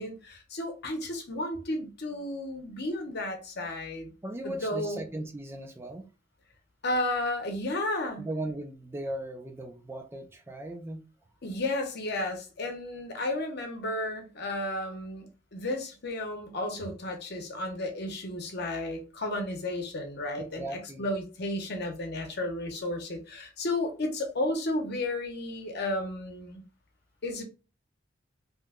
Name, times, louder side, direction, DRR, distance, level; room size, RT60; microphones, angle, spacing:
voice 1, 0.0-4.1 4.4-5.0 6.8-8.3 11.4-26.6 27.2-27.4, left 1 dB, 60° left, 0.8 m, -33 dB
voice 2, 4.2-6.1 8.2-11.0 20.5-21.1, right 1 dB, 15° right, 0.4 m, -37 dB
2.9 x 2.2 x 3.5 m
head